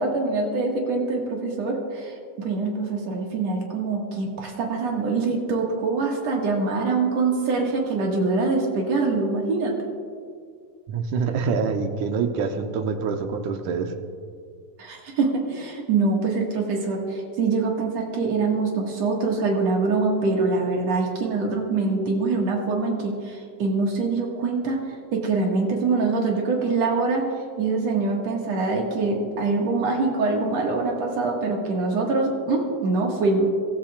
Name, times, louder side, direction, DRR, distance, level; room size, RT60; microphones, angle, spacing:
voice 1, 0.0-9.8 14.8-24.8 25.1-27.2 27.6-33.5, right 3 dB, 60° right, -1 dB, 2.9 m, -24 dB
voice 2, 10.9-13.9, right 5 dB, 90° right, 6 dB, 2.3 m, -26 dB
23.5 x 13.0 x 2.4 m, 2.2 s
omnidirectional pair, 3.4 m